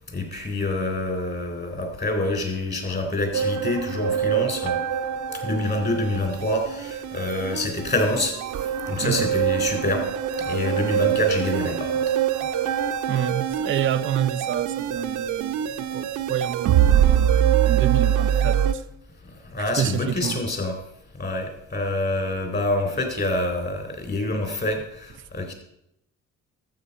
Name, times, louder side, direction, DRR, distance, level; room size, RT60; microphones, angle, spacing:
voice 1, 0.1-4.8 5.3-10.1 10.4-12.1 19.4-20.8 21.2-25.5, left 2 dB, 35° left, 3.7 m, -26 dB
sound 1, 3.3-18.7, right 10 dB, 80° right, 0.8 m, -24 dB
voice 2, 9.0-9.3 13.1-18.8 19.6-20.4, right 10 dB, 40° right, 0.5 m, -28 dB
12.5 x 7.8 x 5.4 m
cardioid pair, 90°, 30 cm